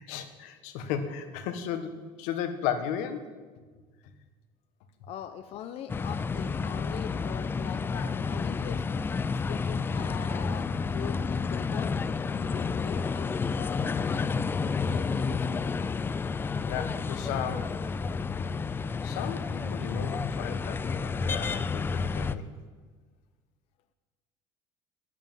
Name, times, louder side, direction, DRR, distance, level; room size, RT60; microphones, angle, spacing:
voice 1, 0.0-1.9 2.2-3.3 16.6-18.0 19.0-22.5, left 8 dB, 90° left, 9 dB, 1.5 m, -35 dB
voice 2, 5.0-8.8 9.3-11.9 12.3-14.5 14.8-15.8, left 10 dB, 50° left, 10 dB, 0.7 m, -42 dB
sound 1, 5.9-22.4, left 5 dB, 15° left, 0.4 m, -30 dB
11.5 x 9.7 x 9.1 m, 1.4 s
cardioid pair, 150°, 13 cm